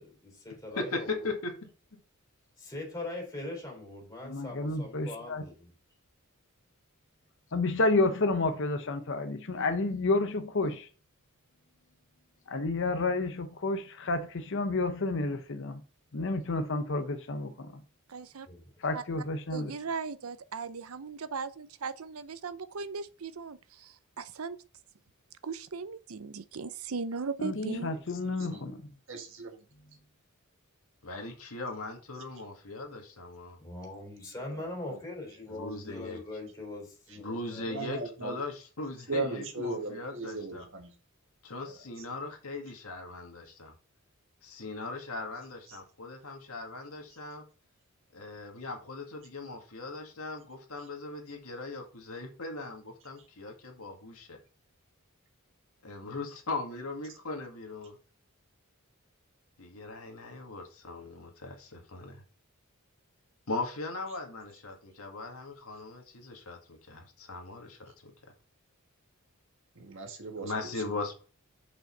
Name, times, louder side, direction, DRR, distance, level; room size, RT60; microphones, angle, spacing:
voice 1, 0.0-1.3 2.6-5.7 18.5-18.7 33.6-37.9, left 2 dB, 15° left, 3.8 m, -41 dB
voice 2, 0.8-1.5 31.0-33.6 35.5-36.2 37.2-40.6 41.4-43.7 44.4-47.4 48.1-54.4 55.8-58.0 59.6-62.2 63.5-68.1 70.4-71.1, left 3 dB, 85° left, 2.1 m, -39 dB
voice 3, 4.2-5.4 7.5-10.9 12.5-15.8 16.1-17.8 18.8-19.7 27.4-28.8, left 2 dB, 60° left, 0.8 m, -30 dB
voice 4, 18.1-18.5 18.9-19.0 19.5-24.6 25.4-27.9, right 4 dB, 80° right, 0.7 m, -38 dB
voice 5, 28.2-28.6 29.1-29.6 34.5-35.0 37.7-38.4 39.1-40.9 41.7-41.8 69.8-70.9, right 2 dB, 60° right, 1.7 m, -37 dB
6.6 x 5.5 x 5.5 m
head